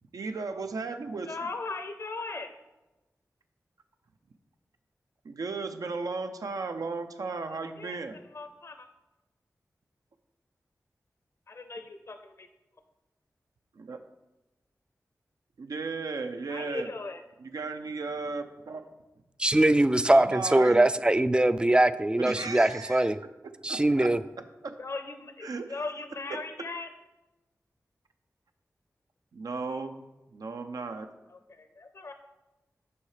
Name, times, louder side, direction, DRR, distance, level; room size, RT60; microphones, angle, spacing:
voice 1, 0.1-1.4 5.2-8.2 13.7-14.0 15.6-16.9 17.4-18.9 20.1-20.9 22.2-23.1 23.7-24.1 24.6-24.8 25.4-25.8 29.3-30.0 30.3-31.1, right 4 dB, 90° right, 7 dB, 0.6 m, -35 dB
voice 2, 1.3-2.5 7.4-8.0 8.3-8.9 11.5-12.5 16.5-17.2 24.8-26.9 31.3-32.1, left 3 dB, 50° left, 7 dB, 0.5 m, -38 dB
voice 3, 19.4-23.2 23.6-24.2, right 1 dB, 15° right, 14 dB, 0.3 m, -22 dB
7.0 x 5.7 x 4.9 m, 1.0 s
wide cardioid pair, 85°, 6 cm